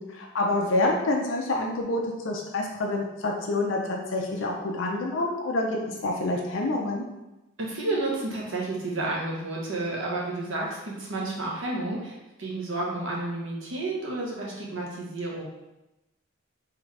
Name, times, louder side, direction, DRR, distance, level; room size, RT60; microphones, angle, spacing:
voice 1, 0.0-7.0, left 2 dB, 65° left, 0 dB, 0.5 m, -27 dB
voice 2, 7.6-15.4, right 2 dB, 65° right, -3 dB, 1.1 m, -31 dB
3.8 x 3.4 x 3.2 m, 0.98 s
head